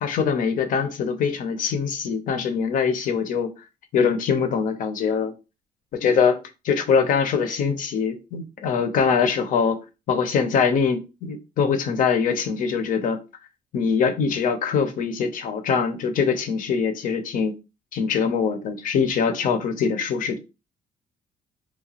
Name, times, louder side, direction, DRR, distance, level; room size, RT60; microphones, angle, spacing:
voice 1, 0.0-3.5 3.9-5.3 5.9-9.8 10.1-13.2 13.7-17.5 17.9-20.4, left 6 dB, 60° left, 0.6 m, -23 dB
2.8 x 2.2 x 2.8 m
cardioid pair, 145°, 16 cm